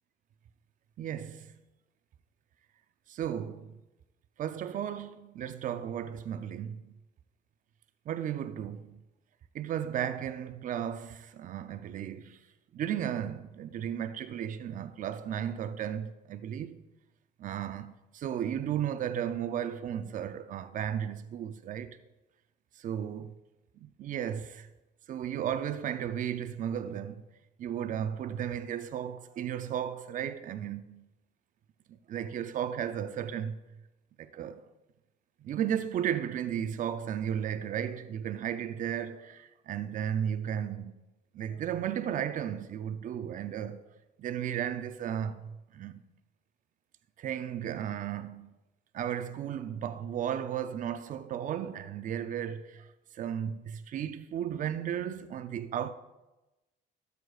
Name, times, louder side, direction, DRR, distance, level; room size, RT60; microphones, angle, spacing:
voice 1, 1.0-1.6 3.1-3.8 4.4-7.0 8.1-9.0 9.5-12.4 12.7-16.8 17.4-22.0 22.8-23.3 23.8-24.7 25.1-27.2 27.6-31.1 31.9-33.6 34.2-34.6 35.4-40.9 41.3-43.8 44.2-46.0 47.2-48.6 48.9-52.9 53.1-55.9, right 9 dB, 50° right, 0.6 m, -34 dB
12.5 x 8.1 x 2.4 m
cardioid pair, 110°, 17 cm